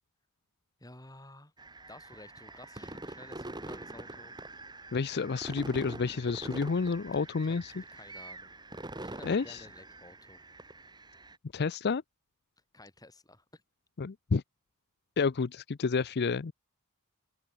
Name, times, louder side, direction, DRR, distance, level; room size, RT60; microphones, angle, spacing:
voice 1, 0.8-1.5 1.8-4.3 7.4-8.6 9.0-10.4 12.7-13.6, left 2 dB, 15° left, 7.6 m, -53 dB
sound 1, 1.6-11.4, right 2 dB, 20° right, 7.3 m, -45 dB
voice 2, 4.9-7.7 9.2-9.6 11.5-12.0 14.0-14.4 15.2-16.5, left 4 dB, 50° left, 0.5 m, -30 dB
open air
head